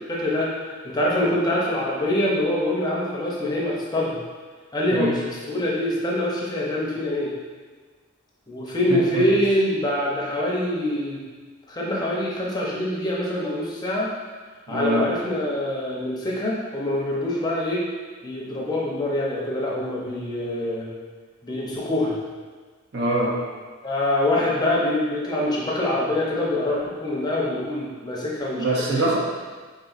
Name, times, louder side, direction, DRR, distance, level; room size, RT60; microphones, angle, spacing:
voice 1, 0.1-4.2 4.7-7.3 8.5-11.2 11.7-14.1 14.7-17.9 18.2-20.9 21.4-22.1 23.8-29.1, left 1 dB, 20° left, -4 dB, 0.6 m, -25 dB
voice 2, 8.9-9.3 14.7-15.1 22.9-23.4 28.5-29.2, right 2 dB, 55° right, -3 dB, 0.7 m, -24 dB
4.0 x 3.9 x 2.4 m, 1.4 s
head